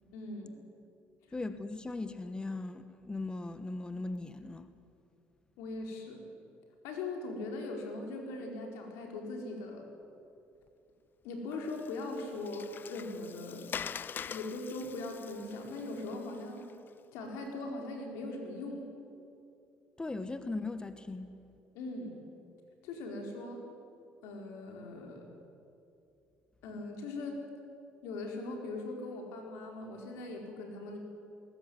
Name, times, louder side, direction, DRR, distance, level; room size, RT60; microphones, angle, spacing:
voice 1, 0.1-0.5 5.6-6.2 6.8-9.9 11.2-13.7 14.3-16.7 17.1-18.8 21.7-22.2 22.8-23.6 24.2-25.3 26.6-27.4 28.0-31.0, left 2 dB, 85° left, 2 dB, 4.6 m, -40 dB
voice 2, 1.3-4.7 20.0-21.3, left 2 dB, 20° left, 11 dB, 1.3 m, -38 dB
Water, 11.5-16.9, left 8 dB, 45° left, 0.6 m, -44 dB
20.5 x 18.5 x 9.5 m, 2.6 s
supercardioid pair, 70°, 5 cm